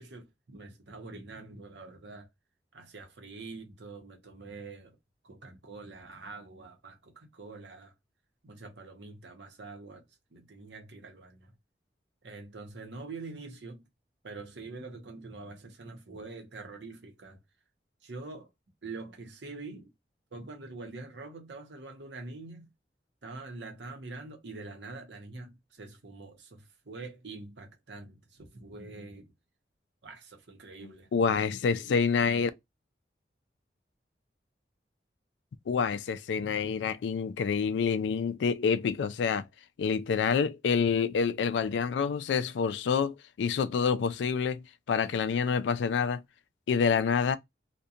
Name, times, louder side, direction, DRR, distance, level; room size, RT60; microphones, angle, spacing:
voice 1, 0.0-2.3 2.7-5.0 5.2-7.9 8.4-11.5 12.2-13.9 14.2-17.4 18.0-18.5 18.8-19.9 20.3-22.7 23.2-29.3 30.0-31.4, right 3 dB, 80° right, 0.7 m, -45 dB
voice 2, 30.8-32.5 35.7-39.5 39.8-46.2 46.7-47.4, left 6 dB, 85° left, 0.3 m, -27 dB
2.7 x 2.2 x 2.4 m
head